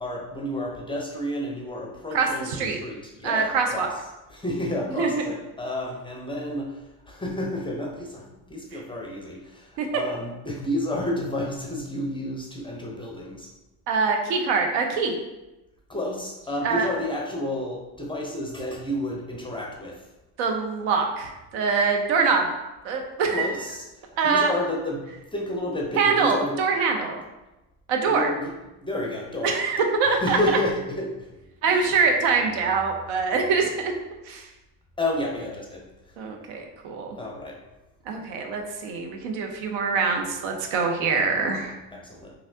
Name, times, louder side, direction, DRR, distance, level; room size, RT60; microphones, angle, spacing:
voice 1, 0.0-3.9 4.3-13.5 15.9-20.0 23.3-26.6 28.1-28.5 28.8-29.6 30.1-31.3 31.6-32.0 35.0-36.2 37.2-37.6 41.9-42.3, left 1 dB, 10° left, -1 dB, 0.5 m, -31 dB
voice 2, 2.1-2.8 3.2-3.9 5.0-5.1 9.8-9.9 13.9-15.2 16.6-16.9 20.4-22.5 22.8-23.5 24.2-24.5 26.0-27.2 27.9-28.3 29.4-30.4 31.6-33.9 34.3-34.5 36.2-37.2 38.1-41.7, right 5 dB, 70° right, 3 dB, 0.7 m, -24 dB
3.0 x 2.6 x 2.7 m, 1.0 s
supercardioid pair, 80°, 47 cm